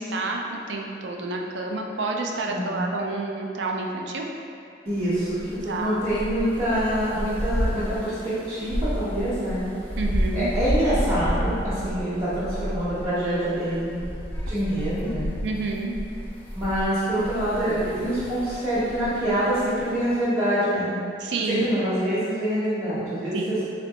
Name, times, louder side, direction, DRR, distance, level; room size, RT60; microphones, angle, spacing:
voice 1, 0.0-4.3 5.7-6.0 10.0-10.5 15.4-15.9 21.2-21.7 23.3-23.7, right 3 dB, 70° right, 1 dB, 0.4 m, -29 dB
voice 2, 2.5-2.8 4.8-9.7 10.3-14.1 14.5-15.3 16.5-21.0 21.5-23.6, equal, 25° right, -15 dB, 0.9 m, -25 dB
sound 1, 4.9-20.2, equal, 10° left, 0.5 m, -31 dB
4.0 x 3.2 x 2.9 m, 2.4 s
head